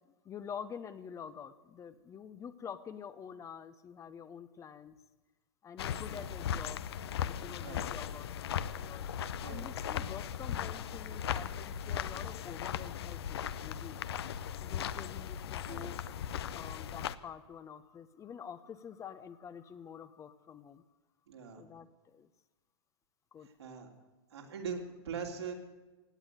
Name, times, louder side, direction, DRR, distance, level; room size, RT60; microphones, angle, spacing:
voice 1, 0.2-5.0 5.6-6.8 7.2-9.1 9.4-14.0 14.6-16.3 16.5-20.8 21.6-22.3 23.3-23.5, left 7 dB, 20° left, 13 dB, 0.9 m, -47 dB
sound 1, 5.8-17.1, left 9 dB, 70° left, 0.8 m, -38 dB
voice 2, 15.6-16.4 21.3-21.6 23.4-23.9 24.3-25.5, right 6 dB, 75° right, 1 dB, 3.3 m, -42 dB
17.5 x 9.0 x 9.2 m, 1.2 s
hypercardioid pair, 110°, 14 cm